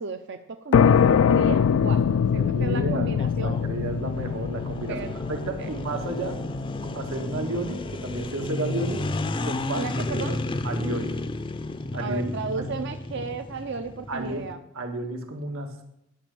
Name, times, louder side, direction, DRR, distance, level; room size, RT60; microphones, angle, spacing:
voice 1, 0.0-2.1 2.3-3.6 4.9-5.1 5.6-5.7 9.7-10.4 12.0-14.6, right 4 dB, 55° right, 7 dB, 0.6 m, -34 dB
sound 1, 0.7-8.1, left 7 dB, 80° left, 0.3 m, -23 dB
voice 2, 1.8-6.4 6.8-9.1 9.4-9.9 10.2-10.4 10.6-11.2 11.9-12.7 14.1-14.5 14.7-15.8, right 2 dB, 85° right, 3 dB, 1.8 m, -32 dB
sound 2, 3.2-14.5, left 2 dB, 25° left, 0.5 m, -32 dB
10.5 x 6.2 x 8.3 m, 0.80 s
head